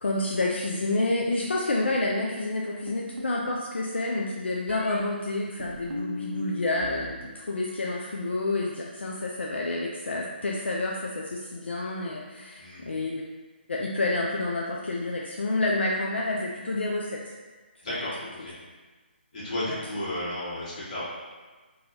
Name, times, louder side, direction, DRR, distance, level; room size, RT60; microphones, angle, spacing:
voice 1, 0.0-13.1 13.7-17.2 17.9-18.0 19.7-19.8, left 2 dB, 75° left, -2 dB, 0.4 m, -29 dB
sound 1, 2.9-3.7 4.7-5.0 5.6-7.1 7.4-8.0, left 1 dB, 80° right, 0.4 m, -38 dB
voice 2, 12.6-12.9 17.8-18.5 19.3-21.0, left 1 dB, 40° left, -10 dB, 1.4 m, -33 dB
2.7 x 2.7 x 2.7 m, 1.3 s
figure-of-eight pair, 145°, 6 cm